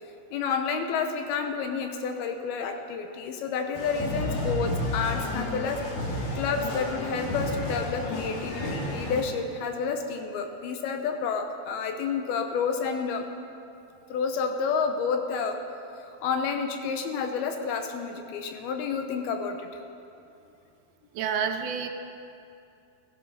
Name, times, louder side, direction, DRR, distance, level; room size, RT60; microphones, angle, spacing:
voice 1, 0.3-5.8 6.4-13.3 14.1-15.6 16.0-19.7, left 5 dB, 75° left, 5 dB, 2.8 m, -30 dB
sound 1, 3.7-9.2, left 1 dB, 60° left, 3.5 m, -31 dB
voice 2, 21.2-21.9, right 7 dB, 80° right, 6 dB, 2.6 m, -28 dB
16.0 x 15.0 x 5.6 m, 2.6 s
omnidirectional pair, 4.7 m